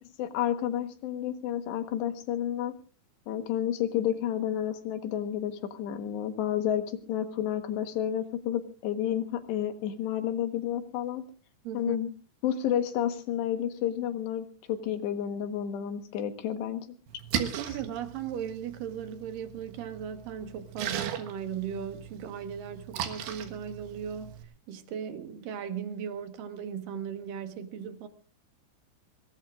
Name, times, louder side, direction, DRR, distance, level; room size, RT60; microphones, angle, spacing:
voice 1, 0.2-2.7 3.3-11.2 11.7-12.1 12.4-17.0, left 10 dB, 80° left, 3.5 m, -30 dB
voice 2, 11.6-12.0 17.4-24.4 24.7-28.1, right 8 dB, 65° right, 2.7 m, -37 dB
Splash splatter, 17.1-24.4, right 9 dB, 80° right, 3.7 m, -38 dB
25.0 x 19.5 x 2.5 m
omnidirectional pair, 5.0 m